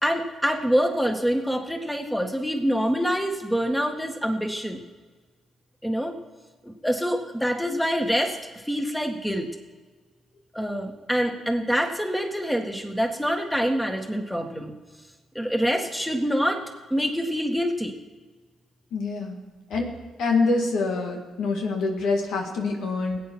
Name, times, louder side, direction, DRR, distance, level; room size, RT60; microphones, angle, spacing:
voice 1, 0.0-4.8 5.8-6.1 6.6-8.4 8.6-9.5 10.5-14.7 15.3-16.6 16.9-18.0, equal, 5° left, 4 dB, 2.0 m, -25 dB
voice 2, 18.9-19.4 19.7-19.9 20.2-23.2, left 3 dB, 70° left, 2 dB, 1.8 m, -25 dB
19.5 x 8.7 x 4.5 m, 1.4 s
hypercardioid pair, 45°, 0 cm